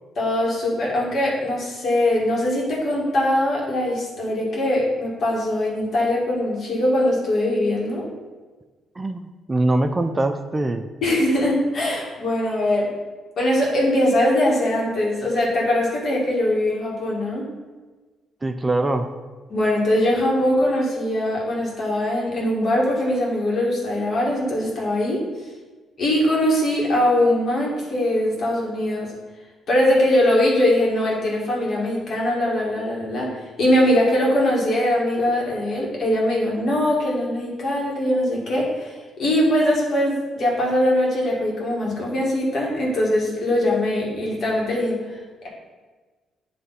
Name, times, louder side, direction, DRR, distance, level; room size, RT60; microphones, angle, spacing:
voice 1, 0.2-8.1 11.0-12.9 13.4-17.5 19.5-25.2 26.0-29.1 29.7-45.2, left 1 dB, 55° left, -3 dB, 2.1 m, -21 dB
voice 2, 9.0-10.9 18.4-19.1, right 2 dB, 20° right, 7 dB, 0.4 m, -23 dB
9.3 x 3.3 x 4.2 m, 1.3 s
cardioid pair, 90°, 0 cm